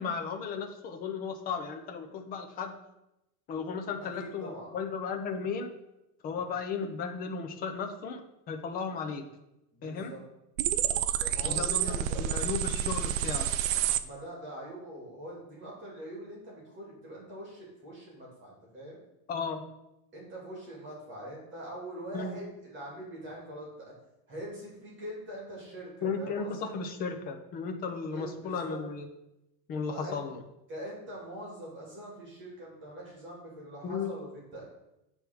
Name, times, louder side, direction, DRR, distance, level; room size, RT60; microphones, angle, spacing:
voice 1, 0.0-2.7 3.5-5.7 6.2-8.2 8.5-9.2 9.8-10.1 11.4-13.5 19.3-19.6 22.1-22.4 26.0-29.1 29.7-30.3 33.8-34.1, left 5 dB, 20° left, 4 dB, 0.5 m, -35 dB
voice 2, 4.1-4.8 6.3-6.5 9.7-10.2 10.7-12.5 14.0-19.0 20.1-23.9 24.3-26.8 28.1-28.8 29.9-30.2 30.7-34.7, right 1 dB, 25° right, -4 dB, 2.6 m, -43 dB
sound 1, 10.6-14.0, right 10 dB, 60° right, 0.5 m, -29 dB
8.3 x 3.5 x 6.1 m, 0.90 s
supercardioid pair, 160°, 48 cm